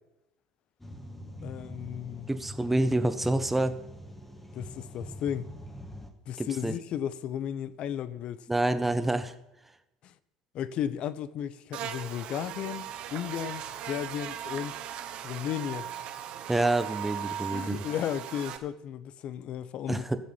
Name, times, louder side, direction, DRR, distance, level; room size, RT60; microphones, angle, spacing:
sound 1, 0.8-6.1, equal, 10° left, 1.9 m, -44 dB
voice 1, 1.4-2.3 4.5-5.5 6.3-8.4 10.0-10.1 10.5-14.8 15.2-15.9 17.5-20.0, left 10 dB, 50° left, 0.7 m, -34 dB
voice 2, 2.3-3.8 6.4-6.7 8.5-9.3 16.5-17.8 19.9-20.2, right 2 dB, 10° right, 1.1 m, -27 dB
Buzz, 11.7-18.6, right 10 dB, 55° right, 1.2 m, -38 dB
13.5 x 7.5 x 5.5 m
hypercardioid pair, 75°, 2 cm